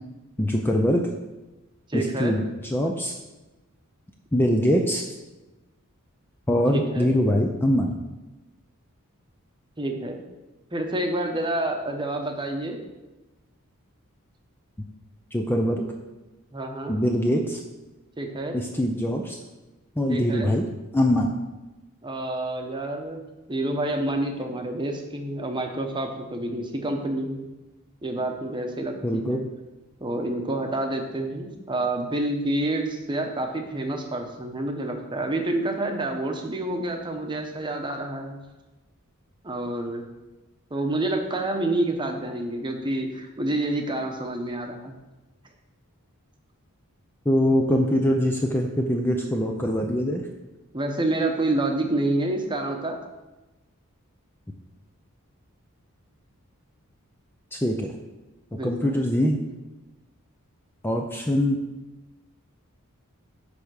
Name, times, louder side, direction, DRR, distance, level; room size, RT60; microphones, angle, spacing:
voice 1, 0.4-1.1 1.9-2.4 2.7-3.1 4.3-5.0 6.5-8.0 15.3-15.9 16.9-17.6 18.5-19.4 20.0-20.7 20.9-21.3 29.0-29.5 47.3-50.2 57.5-57.9 58.6-59.4 60.8-61.6, equal, 10° left, 2 dB, 0.5 m, -23 dB
voice 2, 1.9-2.4 6.7-7.1 9.8-10.2 10.7-12.8 16.5-17.0 18.2-18.6 20.1-20.5 22.0-23.2 23.5-27.5 28.0-29.4 30.0-38.4 39.4-40.0 40.7-45.0 50.7-53.0 58.5-58.9, right 2 dB, 20° right, 3 dB, 0.9 m, -28 dB
10.0 x 3.5 x 6.3 m, 1.1 s
head